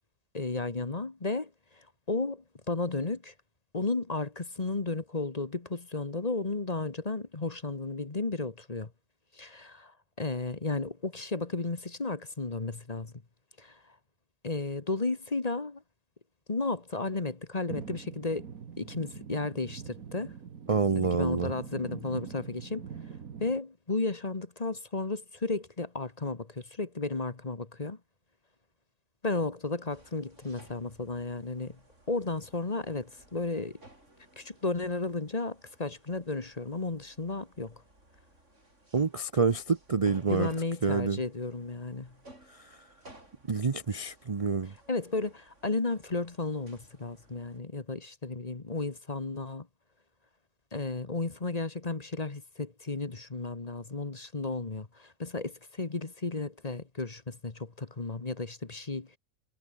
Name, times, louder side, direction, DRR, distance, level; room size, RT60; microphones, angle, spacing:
voice 1, 0.3-3.3 3.7-8.9 9.3-13.1 13.6-13.9 14.4-15.8 16.5-18.5 18.8-20.4 21.1-22.8 23.4-28.0 29.2-31.8 32.1-33.8 34.4-37.8 40.3-42.1 44.9-49.7 50.7-59.2, left 3 dB, 30° left, 1.4 m, -33 dB
sound 1, 17.7-23.6, right 7 dB, 80° right, 1.9 m, -43 dB
voice 2, 20.7-21.5 38.9-40.5 40.8-41.2 42.5-42.8 43.5-44.7, right 5 dB, 30° right, 0.7 m, -27 dB
sound 2, 29.9-47.6, right 1 dB, 55° right, 8.2 m, -58 dB
omnidirectional pair, 1.5 m